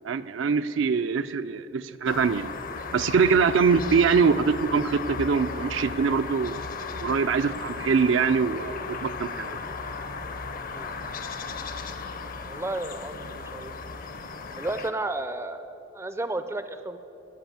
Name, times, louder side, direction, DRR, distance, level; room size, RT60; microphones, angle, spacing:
voice 1, 0.0-2.5 2.9-6.6 7.0-9.5, right 5 dB, 70° right, 11 dB, 0.4 m, -23 dB
sound 1, 2.1-14.9, left 4 dB, 45° left, 0.6 m, -36 dB
voice 2, 12.4-13.7 14.6-17.0, right 2 dB, 15° right, 10 dB, 0.4 m, -33 dB
16.0 x 5.4 x 9.3 m, 2.9 s
head